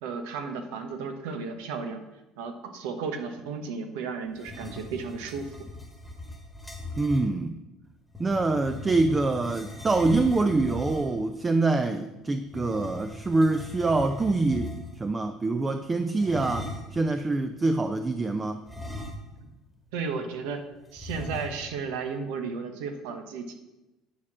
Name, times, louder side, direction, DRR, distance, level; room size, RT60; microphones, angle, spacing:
voice 1, 0.0-2.0 2.4-5.7 19.9-20.6 20.9-23.5, right 5 dB, 90° right, 7 dB, 1.0 m, -34 dB
sound 1, 4.3-7.3 8.1-11.3 12.5-15.1 16.2-17.0 18.7-19.6 19.9-20.0 21.0-21.8, left 1 dB, ahead, 1.4 m, -39 dB
voice 2, 7.0-7.6 8.2-18.6, right 3 dB, 20° right, 8 dB, 0.5 m, -25 dB
10.0 x 4.3 x 6.1 m, 0.99 s
cardioid pair, 120°, 0 cm